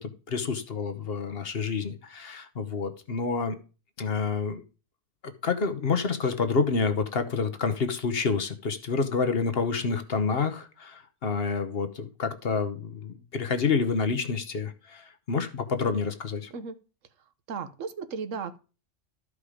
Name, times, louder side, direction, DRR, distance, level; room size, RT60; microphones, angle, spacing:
voice 1, 0.0-3.6 4.0-4.6 5.2-16.5, left 5 dB, 50° left, 9 dB, 1.1 m, -28 dB
voice 2, 17.5-18.6, right 5 dB, 75° right, 10 dB, 1.3 m, -35 dB
13.0 x 4.9 x 5.0 m, 0.34 s
omnidirectional pair, 1.3 m